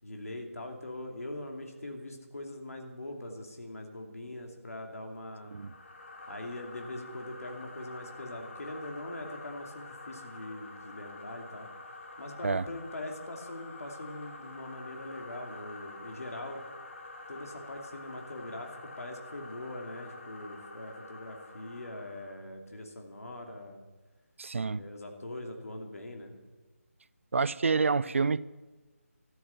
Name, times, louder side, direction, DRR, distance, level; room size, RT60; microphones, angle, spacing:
voice 1, 0.0-5.5 6.3-11.7 12.2-16.6 17.3-23.8 24.7-26.4, left 1 dB, 70° left, 2.8 m, -42 dB
sound 1, 5.4-22.4, left 3 dB, 55° left, 2.9 m, -48 dB
voice 2, 24.4-24.8 27.3-28.4, right 4 dB, 55° right, 0.5 m, -28 dB
13.0 x 8.8 x 9.8 m
figure-of-eight pair, 165°, 8 cm